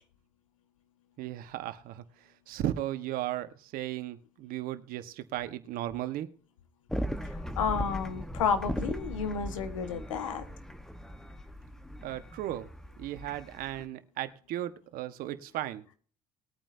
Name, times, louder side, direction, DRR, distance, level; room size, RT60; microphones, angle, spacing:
voice 1, 1.2-2.0 2.5-6.3 12.0-12.7 13.0-15.8, right 13 dB, 65° right, 1.5 m, -36 dB
sound 1, 6.9-13.8, equal, 5° left, 1.3 m, -38 dB
voice 2, 7.6-10.4, left 6 dB, 90° left, 1.6 m, -31 dB
20.5 x 8.9 x 2.8 m
hypercardioid pair, 70°, 16 cm